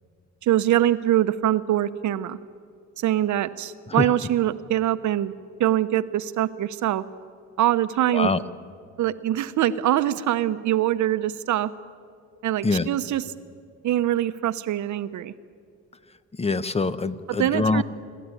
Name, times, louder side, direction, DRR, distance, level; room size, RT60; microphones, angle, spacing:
voice 1, 0.4-2.4 3.0-5.3 5.6-7.0 7.6-8.3 9.0-11.7 12.4-13.2 13.8-15.3 17.4-17.8, right 12 dB, 70° right, 13 dB, 0.9 m, -23 dB
voice 2, 16.3-17.8, left 3 dB, 20° left, 13 dB, 0.9 m, -24 dB
26.5 x 13.0 x 9.8 m, 2.2 s
cardioid pair, 90°, 30 cm